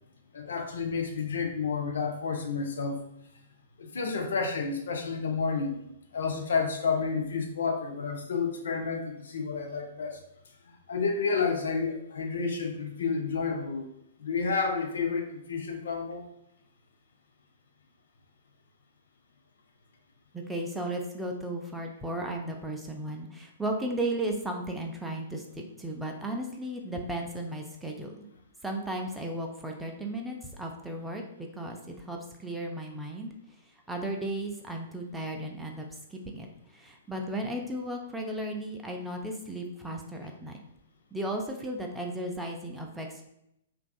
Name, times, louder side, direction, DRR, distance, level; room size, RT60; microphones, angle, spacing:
voice 1, 0.3-3.0 3.8-5.8 6.1-10.2 10.9-13.9 14.2-16.3, left 5 dB, 65° left, 3 dB, 0.4 m, -30 dB
voice 2, 20.3-28.3 28.6-31.2 31.5-33.3 33.9-36.5 36.7-40.6 41.1-43.2, right 1 dB, 5° right, 1 dB, 0.4 m, -35 dB
2.5 x 2.3 x 2.3 m, 0.79 s
figure-of-eight pair, 115°, 0 cm